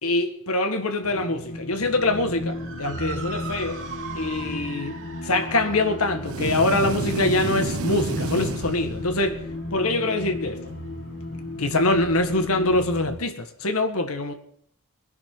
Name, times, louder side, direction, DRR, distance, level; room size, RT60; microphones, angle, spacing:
voice 1, 0.0-3.8 4.1-5.0 5.2-9.4 9.7-10.6 11.6-14.3, left 2 dB, 75° left, 1.8 m, -24 dB
sound 1, 1.0-13.2, left 2 dB, 55° left, 2.1 m, -35 dB
Motor vehicle (road) / Siren, 2.4-11.0, right 5 dB, 60° right, 3.6 m, -42 dB
sound 2, 6.2-9.4, right 2 dB, 75° right, 1.2 m, -30 dB
21.5 x 11.5 x 3.9 m
head